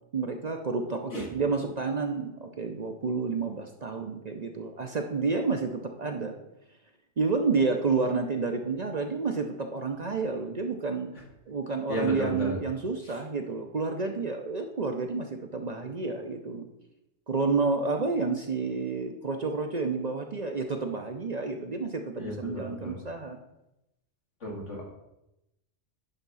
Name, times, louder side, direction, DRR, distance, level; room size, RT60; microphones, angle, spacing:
voice 1, 0.1-6.4 7.2-11.1 11.5-16.7 17.3-23.4, right 4 dB, 45° right, 4 dB, 0.6 m, -30 dB
voice 2, 11.9-12.6 22.2-23.0 24.4-24.8, equal, 80° left, -2 dB, 2.4 m, -33 dB
10.5 x 3.6 x 5.5 m, 0.89 s
omnidirectional pair, 1.2 m